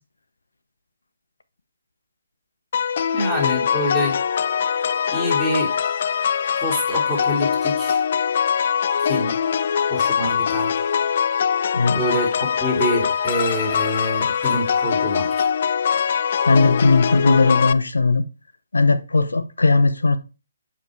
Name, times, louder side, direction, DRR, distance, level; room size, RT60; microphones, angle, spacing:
sound 1, 2.7-17.7, left 7 dB, 50° left, 0.3 m, -22 dB
voice 1, 3.1-4.2 5.1-5.7 6.6-8.0 9.0-9.4 9.9-10.7 11.9-15.5, equal, 5° left, 2.9 m, -26 dB
voice 2, 16.5-18.2 18.7-20.2, left 3 dB, 85° left, 0.8 m, -17 dB
7.3 x 5.0 x 3.2 m
hypercardioid pair, 150°, 0 cm